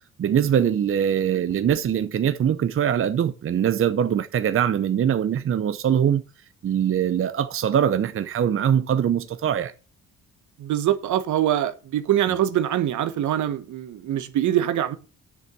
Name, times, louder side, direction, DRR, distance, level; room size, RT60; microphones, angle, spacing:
voice 1, 0.2-6.2 6.6-9.7 12.3-12.4, right 9 dB, 45° right, 0.7 m, -22 dB
voice 2, 10.6-15.0, right 11 dB, 75° right, 1.2 m, -23 dB
7.6 x 6.8 x 7.4 m
cardioid pair, 90°, 30 cm